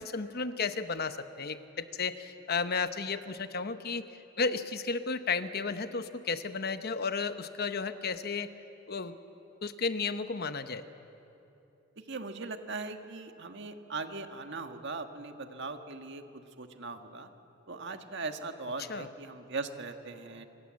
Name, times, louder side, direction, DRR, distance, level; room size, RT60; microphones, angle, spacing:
voice 1, 0.0-4.1 4.4-8.5 8.9-9.2 9.6-10.8 18.8-19.1, left 4 dB, 50° left, 10 dB, 1.0 m, -33 dB
voice 2, 12.1-17.3 17.7-20.5, right 3 dB, 60° right, 6 dB, 1.7 m, -39 dB
27.0 x 25.0 x 7.6 m, 2.9 s
head